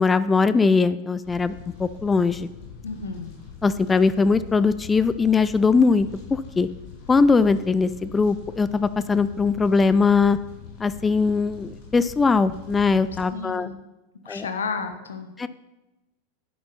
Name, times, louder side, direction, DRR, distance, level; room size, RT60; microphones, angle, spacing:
voice 1, 0.0-1.5 1.8-2.5 3.6-6.7 7.1-10.4 10.8-13.7 14.3-14.5 15.4-15.5, left 4 dB, 15° left, 15 dB, 0.3 m, -20 dB
Fire, 1.2-13.2, left 7 dB, 45° left, 3.0 m, -43 dB
voice 2, 2.8-3.3 13.3-13.7 14.2-15.3, left 4 dB, 70° left, 7 dB, 1.0 m, -32 dB
10.0 x 7.8 x 4.2 m, 1.0 s
figure-of-eight pair, 90°, 0 cm